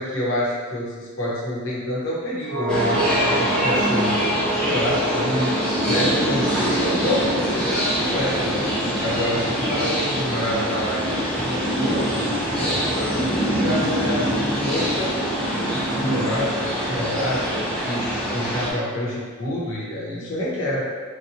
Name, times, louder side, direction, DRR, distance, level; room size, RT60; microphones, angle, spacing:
voice 1, 0.0-8.7 9.0-11.1 11.4-12.1 12.6-20.8, left 1 dB, 60° left, -5 dB, 0.9 m, -28 dB
sound 1, 2.4-10.9 11.2-11.3, right 1 dB, 80° right, 0.6 m, -30 dB
sound 2, 2.7-18.7, equal, 5° left, 0.5 m, -24 dB
4.2 x 2.2 x 2.7 m, 1.5 s
head